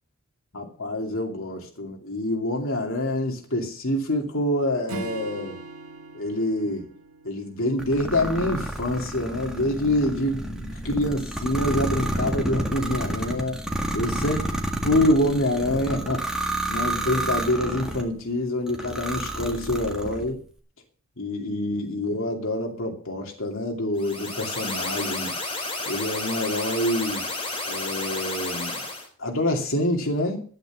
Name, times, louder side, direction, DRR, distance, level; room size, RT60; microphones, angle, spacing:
voice 1, 0.5-5.6 6.1-6.9 7.2-13.6 13.9-14.4 14.8-16.4 16.7-20.4 21.2-25.3 25.9-27.3 27.7-28.8 29.2-30.4, left 1 dB, 65° left, 2.6 m, -26 dB
Acoustic guitar / Strum, 4.9-8.4, right 2 dB, 75° right, 2.2 m, -40 dB
sound 1, 7.8-18.1 18.7-20.3, right 1 dB, 5° right, 1.7 m, -30 dB
sound 2, 24.0-29.1, left 2 dB, 25° left, 3.2 m, -31 dB
13.0 x 9.1 x 6.2 m
head